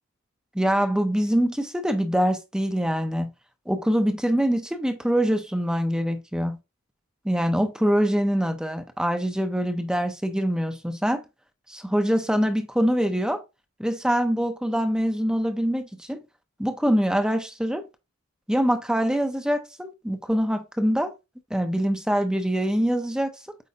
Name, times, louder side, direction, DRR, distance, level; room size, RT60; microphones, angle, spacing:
voice 1, 0.5-3.3 3.7-6.6 7.2-11.2 11.7-13.4 13.8-16.2 16.6-17.8 18.5-21.1 21.5-23.3, equal, 5° right, 0.5 m, -24 dB
8.4 x 4.6 x 2.8 m
head